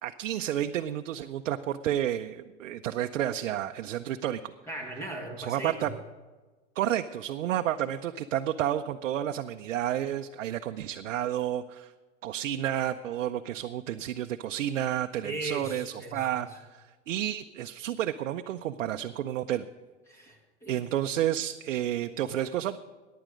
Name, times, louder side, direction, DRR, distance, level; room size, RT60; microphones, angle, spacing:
voice 1, 0.0-4.5 5.4-6.0 6.8-11.9 12.2-19.6 20.7-22.8, right 11 dB, 85° right, 6 dB, 0.6 m, -31 dB
voice 2, 4.7-5.9 15.2-16.4 20.1-20.8, right 2 dB, 5° left, 2 dB, 1.7 m, -38 dB
15.0 x 10.5 x 5.1 m, 1.3 s
supercardioid pair, 150°, 37 cm